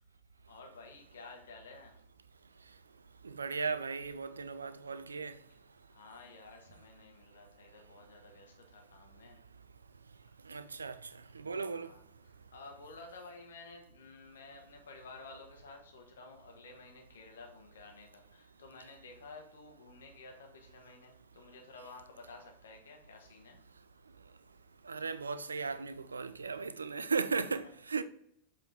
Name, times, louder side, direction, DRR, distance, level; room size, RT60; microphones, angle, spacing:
voice 1, 0.5-2.0 5.9-9.4 11.8-12.0 12.5-23.6, left 3 dB, 65° left, 1.5 m, -52 dB
voice 2, 3.2-5.4 10.5-11.1 11.3-11.9 24.8-28.0, right 4 dB, 75° right, 0.5 m, -36 dB
7.6 x 4.3 x 3.5 m
figure-of-eight pair, 90°, 0 cm